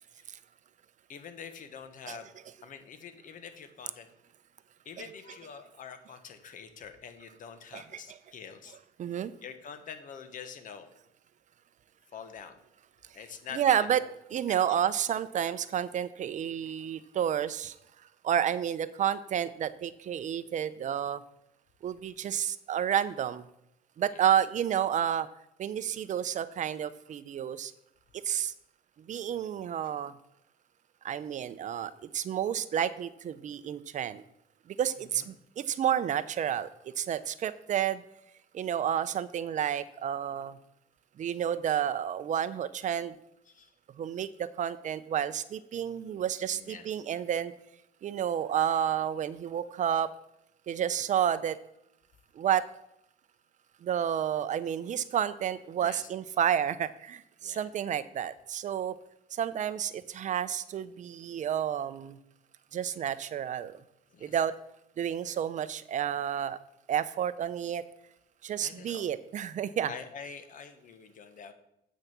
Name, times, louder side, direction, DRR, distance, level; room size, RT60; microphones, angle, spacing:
voice 1, 1.1-2.3 2.6-4.1 4.8-8.8 9.1-10.9 12.1-12.5 13.1-14.1 14.5-14.8 24.1-24.2 35.1-35.3 43.5-43.7 46.5-46.9 55.8-56.1 57.4-57.7 64.1-64.4 68.6-69.0 69.8-71.5, left 6 dB, 50° left, 9 dB, 1.3 m, -46 dB
voice 2, 9.0-9.3 13.5-14.0 14.3-17.7 18.2-21.2 21.8-23.5 24.0-25.3 25.6-27.7 28.2-28.5 29.1-30.2 31.0-34.2 34.7-36.7 37.0-38.0 38.5-40.6 41.2-43.1 44.0-47.5 48.0-50.1 50.7-51.6 52.4-52.7 53.8-58.9 59.3-62.2 62.7-63.7 64.2-64.5 65.0-66.6 66.9-67.8 68.4-69.9, right 9 dB, 45° right, 14 dB, 0.6 m, -30 dB
8.4 x 6.4 x 6.0 m, 0.80 s
cardioid pair, 110°, 17 cm